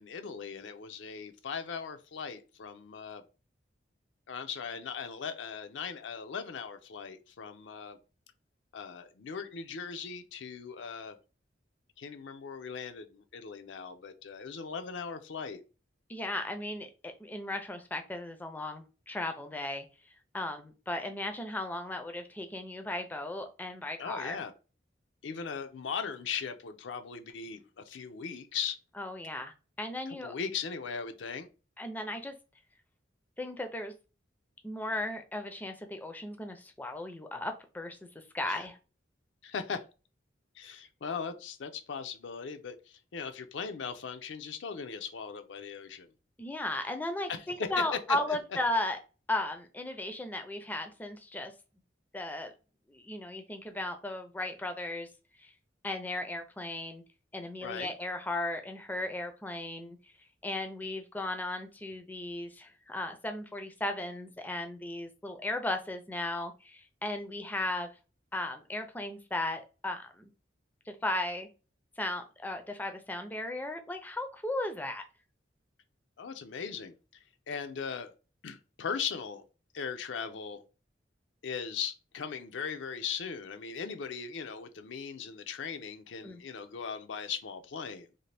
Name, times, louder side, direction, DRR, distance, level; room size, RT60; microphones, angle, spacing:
voice 1, 0.0-3.2 4.3-8.0 8.7-11.2 12.0-15.6 24.0-24.5 25.2-28.8 30.1-31.5 38.4-38.7 39.4-39.8 40.6-46.1 47.3-47.8 48.1-48.4 57.6-57.9 76.2-77.0 77.5-78.1 78.4-79.4 79.7-80.6 81.4-88.1, left 6 dB, 80° left, 0.5 m, -39 dB
voice 2, 16.1-19.9 20.3-24.4 29.0-30.3 31.8-32.3 33.4-33.9 34.6-38.0 38.3-38.8 46.4-49.0 49.3-51.5 52.1-52.5 52.9-55.1 55.4-55.5 55.8-57.0 57.3-60.0 60.4-67.9 68.3-70.3 70.9-71.5 72.0-75.0 86.2-86.4, left 1 dB, 10° left, 0.4 m, -36 dB
2.6 x 2.5 x 3.2 m
head